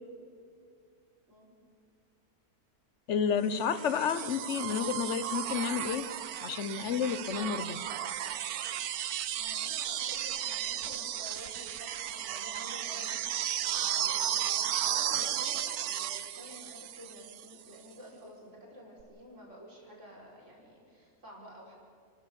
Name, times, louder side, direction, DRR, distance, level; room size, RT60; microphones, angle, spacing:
voice 1, 3.1-6.0 6.4-7.8, left 7 dB, 55° left, 13 dB, 1.2 m, -31 dB
sound 1, 3.5-17.5 19.0-19.1, right 10 dB, 85° right, 1.3 m, -34 dB
voice 2, 9.4-13.2 13.7-21.7, equal, 50° right, -2 dB, 5.3 m, -50 dB
30.0 x 13.5 x 7.0 m, 2.3 s
omnidirectional pair, 1.6 m